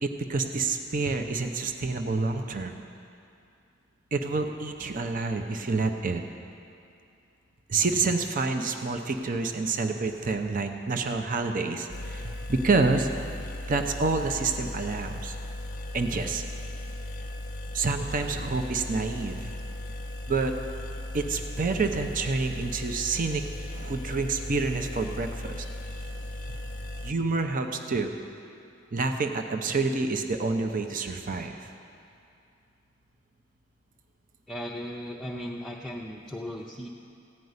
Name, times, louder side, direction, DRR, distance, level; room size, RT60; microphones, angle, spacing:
voice 1, 0.0-2.8 4.1-6.2 7.7-13.1 13.7-15.3 15.9-16.4 17.7-19.5 20.3-20.6 21.1-23.4 23.7-25.6 27.0-28.1 28.9-31.7, right 3 dB, 45° right, 6 dB, 0.7 m, -28 dB
sound 1, 11.9-27.1, left 1 dB, 45° left, 0.6 m, -37 dB
voice 2, 34.5-36.9, equal, ahead, -3 dB, 0.6 m, -37 dB
15.0 x 5.3 x 9.5 m, 2.6 s
head